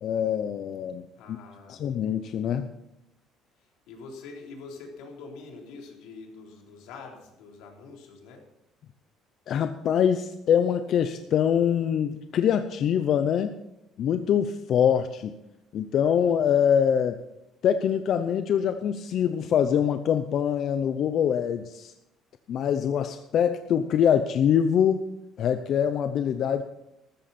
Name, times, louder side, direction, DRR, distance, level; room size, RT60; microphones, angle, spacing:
voice 1, 0.0-1.4 1.7-2.7 9.5-13.5 14.0-15.3 15.7-17.2 17.6-21.9 22.5-25.0 25.4-26.6, left 8 dB, 50° left, 9 dB, 0.7 m, -24 dB
voice 2, 1.2-1.8 3.6-8.5, left 4 dB, 85° left, 0 dB, 3.7 m, -45 dB
14.0 x 13.5 x 4.3 m, 0.86 s
cardioid pair, 150°, 0 cm